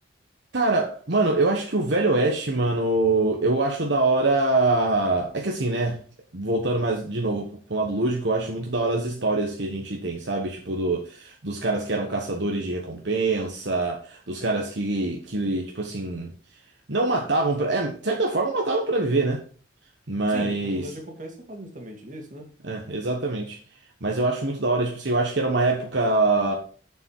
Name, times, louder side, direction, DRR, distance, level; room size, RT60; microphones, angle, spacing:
voice 1, 0.5-6.0 6.3-16.3 16.9-19.4 20.1-20.8 22.6-23.6 24.0-26.5, right 2 dB, 65° right, 1.2 m, -24 dB
voice 2, 20.3-22.5, right 1 dB, 40° right, 2.1 m, -38 dB
7.1 x 7.0 x 4.6 m
head